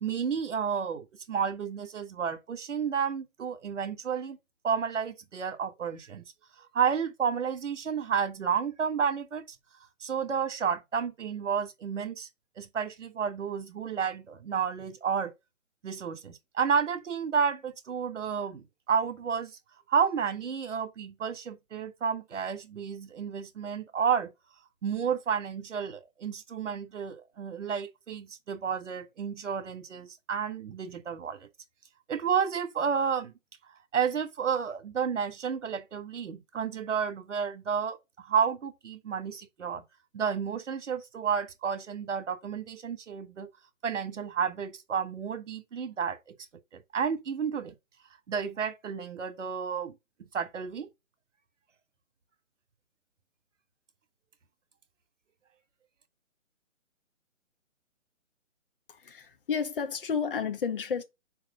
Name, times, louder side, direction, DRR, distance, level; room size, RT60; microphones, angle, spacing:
voice 1, 0.0-4.4 4.6-6.2 6.6-9.4 10.0-12.3 12.6-15.3 15.8-19.5 19.9-24.3 24.8-31.5 32.1-33.3 33.9-39.8 40.1-43.5 43.8-46.2 46.7-47.7 48.3-49.9 50.3-50.9, right 7 dB, 60° right, 1.7 m, -31 dB
voice 2, 58.9-61.0, left 6 dB, 40° left, 1.3 m, -31 dB
4.7 x 4.7 x 5.1 m
hypercardioid pair, 155°, 40 cm